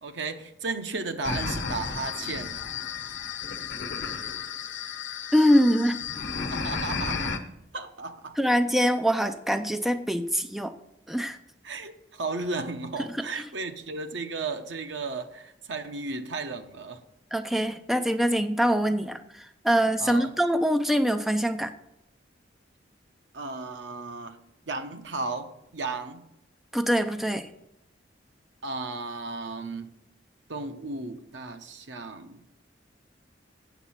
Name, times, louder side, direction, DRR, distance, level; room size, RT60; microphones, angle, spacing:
voice 1, 0.0-2.6 6.5-7.4 7.7-8.4 11.6-17.0 20.0-20.3 23.3-24.4 24.7-26.2 28.6-29.9 30.5-32.4, right 3 dB, 80° right, 7 dB, 0.9 m, -34 dB
sound 1, 1.2-7.4, left 5 dB, 85° left, 1.0 m, -33 dB
voice 2, 5.3-6.0 8.4-10.7 11.1-11.4 13.0-13.4 17.3-21.7 26.7-27.5, equal, ahead, 8 dB, 0.4 m, -24 dB
8.2 x 7.1 x 5.7 m, 0.82 s
head